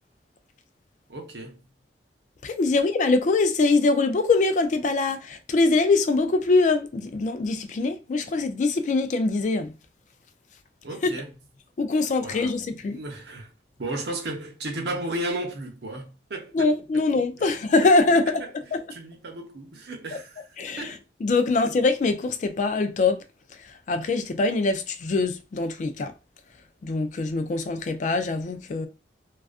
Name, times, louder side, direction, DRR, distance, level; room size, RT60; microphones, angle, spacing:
voice 1, 1.1-1.6 10.8-11.4 12.2-12.6 12.8-13.5 13.8-16.7 17.4-17.5 17.8-18.0 18.3-21.0 21.5-21.6, right 1 dB, 70° right, 0.7 m, -35 dB
voice 2, 2.4-9.7 11.8-13.0 16.5-18.4 20.6-20.8 21.2-23.2 23.9-26.1 26.8-28.9, left 3 dB, 45° left, 0.3 m, -23 dB
2.4 x 2.3 x 2.3 m
head